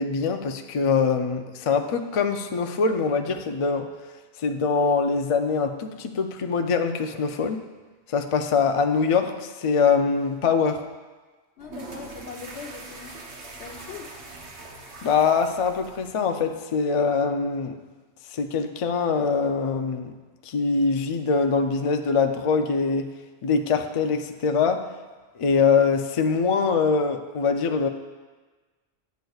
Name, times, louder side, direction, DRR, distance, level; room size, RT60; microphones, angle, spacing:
voice 1, 0.0-3.9 4.4-7.6 8.1-10.9 15.0-17.8 18.3-20.1 20.4-23.1 23.4-24.9 25.4-27.9, left 5 dB, 55° left, 6 dB, 0.3 m, -23 dB
voice 2, 11.6-13.2 13.6-14.1, left 5 dB, 80° left, 3 dB, 1.1 m, -40 dB
sound 1, 11.6-16.6, right 3 dB, 75° right, 1.2 m, -43 dB
10.5 x 7.8 x 2.3 m, 1.3 s
omnidirectional pair, 1.1 m